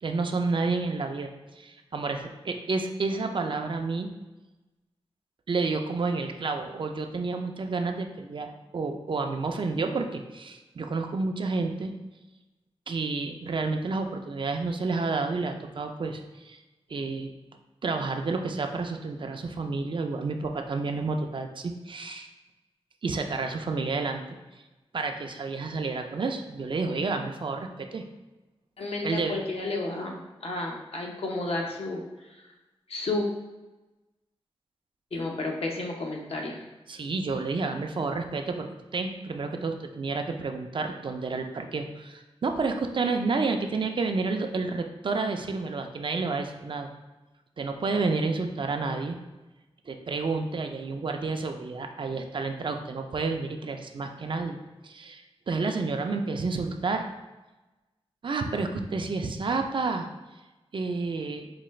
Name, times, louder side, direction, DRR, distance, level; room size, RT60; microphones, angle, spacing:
voice 1, 0.0-4.1 5.5-11.9 12.9-16.6 16.9-17.3 17.8-22.3 23.0-24.2 24.9-28.1 29.0-29.4 36.9-46.9 47.6-49.2 49.9-54.6 54.8-57.1 58.2-60.1 60.7-61.5, right 3 dB, 50° right, 5 dB, 0.4 m, -30 dB
voice 2, 28.8-32.0 32.4-32.5 32.9-33.3 35.1-36.7, left 2 dB, 70° left, 0 dB, 0.7 m, -32 dB
4.8 x 2.2 x 3.2 m, 1.1 s
wide cardioid pair, 80°, 11 cm